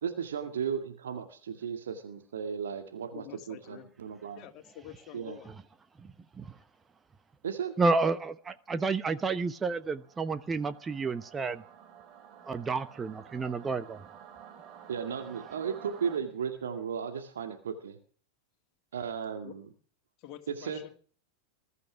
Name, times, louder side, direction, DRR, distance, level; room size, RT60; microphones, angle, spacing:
voice 1, 0.0-4.4 5.1-5.4 7.4-7.8 14.9-18.0 18.9-19.7 20.6-20.8, right 7 dB, 65° right, 6 dB, 2.1 m, -35 dB
voice 2, 3.1-3.9 4.3-5.5 19.4-19.5 20.2-20.9, left 11 dB, 40° left, 5 dB, 2.8 m, -47 dB
voice 3, 7.8-11.6 12.5-14.0, right 4 dB, 15° right, 11 dB, 1.0 m, -30 dB
Singing / Musical instrument, 9.0-16.2, right 8 dB, 35° right, 2.7 m, -52 dB
21.0 x 12.5 x 4.7 m, 0.43 s
figure-of-eight pair, 90°, 0 cm